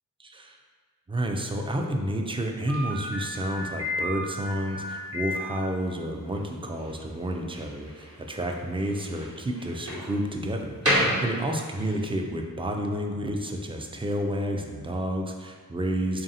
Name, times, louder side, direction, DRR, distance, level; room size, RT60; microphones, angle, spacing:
voice 1, 0.2-0.6 1.1-16.2, right 1 dB, 15° right, 3 dB, 0.4 m, -30 dB
Slam, 2.7-12.0, equal, 40° right, 1.0 m, -32 dB
3.3 x 2.6 x 4.0 m, 1.5 s
wide cardioid pair, 65°, 36 cm